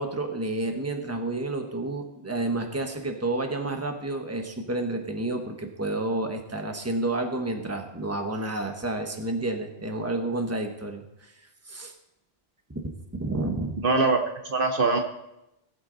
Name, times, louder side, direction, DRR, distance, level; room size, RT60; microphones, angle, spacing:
voice 1, 0.0-11.3 11.7-11.9 12.7-12.8 13.1-13.8, right 2 dB, 15° right, 4 dB, 1.2 m, -30 dB
voice 2, 13.8-15.0, right 3 dB, 55° right, 5 dB, 1.0 m, -23 dB
17.5 x 8.0 x 4.0 m, 0.90 s
omnidirectional pair, 1.1 m